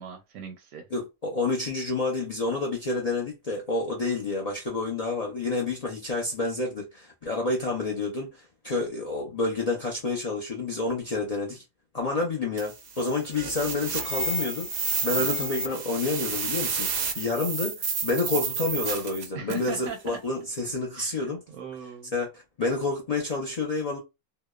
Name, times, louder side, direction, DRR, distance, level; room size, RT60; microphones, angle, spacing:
voice 1, 0.0-0.9 15.2-15.5 19.3-20.2 21.0-22.1, right 6 dB, 80° right, 1.0 m, -39 dB
voice 2, 0.9-11.6 11.9-21.4 22.1-24.0, left 3 dB, 70° left, 0.3 m, -29 dB
sound 1, 12.6-19.8, right 4 dB, 65° right, 0.6 m, -30 dB
2.8 x 2.0 x 2.2 m
omnidirectional pair, 1.5 m